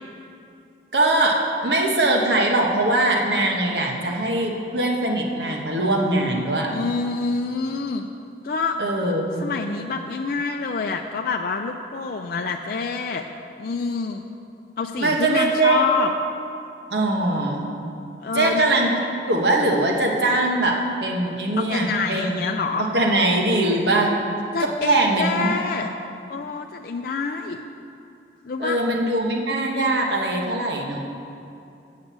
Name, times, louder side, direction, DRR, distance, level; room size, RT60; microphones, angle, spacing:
voice 1, 0.9-6.7 8.8-9.5 15.0-15.8 16.9-17.7 18.3-18.9 19.3-22.4 22.9-24.1 24.6-25.5 28.6-31.0, right 2 dB, 70° right, 0 dB, 1.3 m, -21 dB
voice 2, 6.7-8.1 8.4-8.8 9.4-13.3 13.6-14.2 14.8-16.1 18.2-18.9 21.6-22.9 24.5-25.9 26.3-27.6 28.4-28.8, left 4 dB, 55° left, 3 dB, 0.4 m, -27 dB
8.6 x 6.4 x 7.3 m, 2.6 s
head